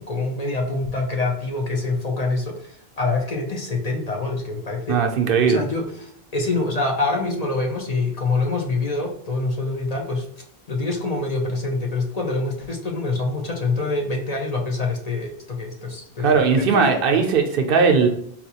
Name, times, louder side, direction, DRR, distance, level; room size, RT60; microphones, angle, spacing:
voice 1, 0.0-5.0 5.4-10.3 10.7-17.2, left 3 dB, 45° left, 0 dB, 0.6 m, -25 dB
voice 2, 4.9-5.6 16.2-18.1, right 5 dB, 65° right, 4 dB, 0.7 m, -18 dB
4.1 x 2.3 x 2.7 m, 0.73 s
omnidirectional pair, 1.0 m